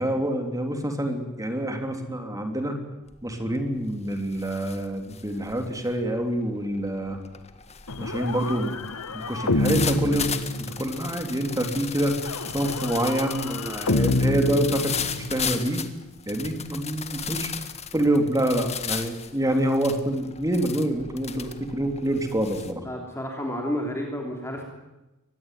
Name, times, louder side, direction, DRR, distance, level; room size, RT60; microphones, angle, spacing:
voice 1, 0.0-2.8 3.2-7.2 8.0-8.7 9.1-15.8 16.3-17.5 17.9-22.8, right 1 dB, 15° right, 5 dB, 3.3 m, -26 dB
sound 1, 3.1-3.4 3.8-22.7, left 7 dB, 30° left, 1.8 m, -36 dB
sound 2, 7.9-11.1 12.2-15.5, left 2 dB, 85° left, 1.4 m, -28 dB
voice 2, 22.9-24.6, equal, 10° left, 1 dB, 3.3 m, -30 dB
24.0 x 20.0 x 9.3 m, 1.0 s
head